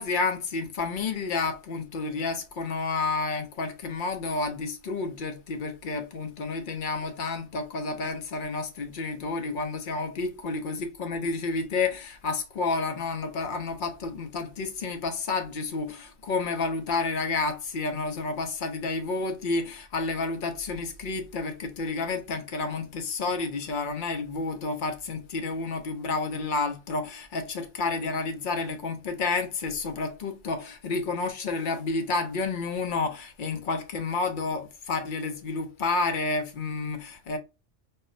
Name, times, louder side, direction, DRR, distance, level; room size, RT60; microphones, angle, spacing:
voice 1, 0.0-37.4, left 3 dB, 55° left, 0.6 m, -30 dB
4.1 x 2.0 x 2.5 m
omnidirectional pair, 1.3 m